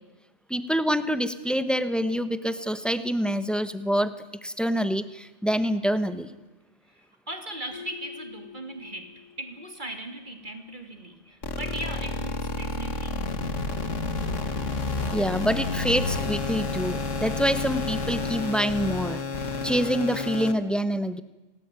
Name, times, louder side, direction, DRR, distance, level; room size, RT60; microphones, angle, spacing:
voice 1, 0.5-4.1 4.4-6.3 15.1-19.2 19.6-21.2, equal, ahead, 12 dB, 1.2 m, -26 dB
voice 2, 6.9-13.2, right 1 dB, 40° right, 6 dB, 3.0 m, -39 dB
sound 1, 7.7-10.3, left 8 dB, 25° left, 4.3 m, -46 dB
sound 2, 11.4-20.5, left 3 dB, 75° left, 2.0 m, -30 dB
28.0 x 19.0 x 9.1 m, 1.1 s
omnidirectional pair, 1.3 m